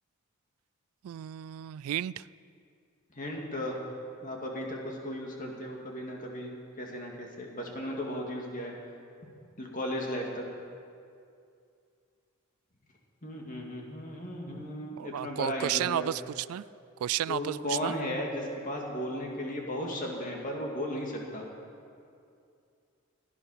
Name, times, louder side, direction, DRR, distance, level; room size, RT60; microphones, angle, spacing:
voice 1, 1.0-2.3 14.5-14.7 15.0-16.6 17.0-17.9, right 11 dB, 80° right, 18 dB, 0.3 m, -32 dB
voice 2, 3.1-3.8 4.2-6.5 6.8-8.7 9.6-10.4 13.2-16.1 17.3-21.5, left 1 dB, 40° left, 0 dB, 2.2 m, -35 dB
16.5 x 11.0 x 5.8 m, 2.4 s
head